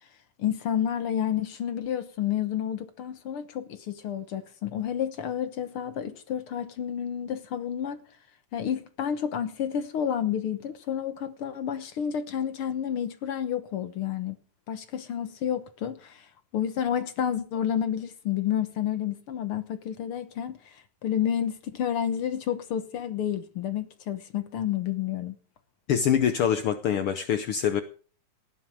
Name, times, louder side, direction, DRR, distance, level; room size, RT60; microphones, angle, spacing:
voice 1, 0.4-8.0 8.5-14.4 14.7-16.3 16.5-25.3, left 9 dB, 60° left, 1.4 m, -30 dB
voice 2, 25.9-27.8, left 8 dB, 80° left, 1.2 m, -24 dB
18.5 x 11.5 x 5.0 m
omnidirectional pair, 3.8 m